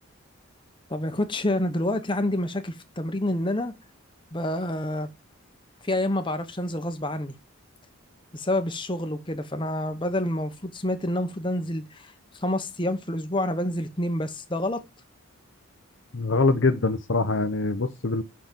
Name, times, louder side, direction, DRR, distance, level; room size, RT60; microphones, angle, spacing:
voice 1, 0.9-3.7 4.3-5.1 5.8-7.3 8.3-14.8, left 1 dB, 20° left, 1.0 m, -28 dB
voice 2, 16.1-18.2, left 3 dB, 60° left, 0.8 m, -23 dB
6.0 x 5.8 x 6.9 m
head